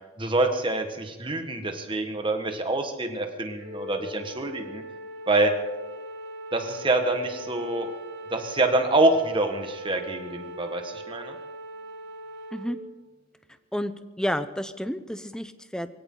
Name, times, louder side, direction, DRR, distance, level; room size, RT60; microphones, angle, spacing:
voice 1, 0.2-4.8 5.3-5.5 6.5-7.9 8.3-11.4, right 2 dB, 25° right, 5 dB, 1.6 m, -26 dB
Wind instrument woodwind instrument, 3.6-12.7, right 1 dB, 65° right, 5.8 m, -41 dB
voice 2, 14.2-15.9, equal, 5° left, 11 dB, 0.7 m, -30 dB
22.5 x 16.5 x 3.9 m, 1.1 s
head